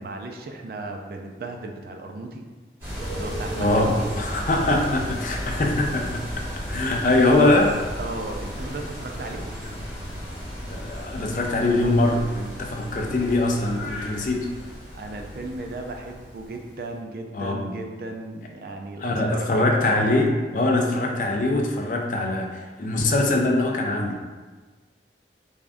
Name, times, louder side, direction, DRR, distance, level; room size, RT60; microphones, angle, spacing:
voice 1, 0.0-2.5 3.1-4.1 8.0-9.5 14.9-19.6, right 2 dB, 55° right, 3 dB, 0.4 m, -35 dB
sound 1, 2.8-16.8, equal, 15° right, 1.3 m, -34 dB
voice 2, 3.6-7.8 10.6-14.5 17.3-17.7 19.0-24.2, left 2 dB, 45° left, 1 dB, 0.4 m, -23 dB
3.4 x 2.5 x 3.5 m, 1.4 s
head